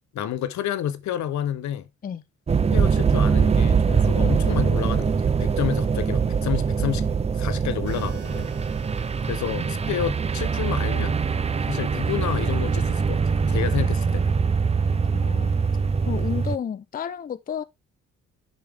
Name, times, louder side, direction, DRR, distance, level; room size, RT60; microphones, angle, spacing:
voice 1, 0.1-1.9 2.7-7.1 7.3-8.5 9.2-11.1 11.7-14.3, left 10 dB, 70° left, 0.8 m, -30 dB
sound 1, 2.5-16.6, right 5 dB, 20° right, 0.5 m, -23 dB
sound 2, 7.9-11.9, right 4 dB, 85° right, 3.1 m, -50 dB
voice 2, 15.1-15.6 16.1-17.6, left 8 dB, 30° left, 0.5 m, -31 dB
7.0 x 5.2 x 3.4 m
cardioid pair, 90°, 30 cm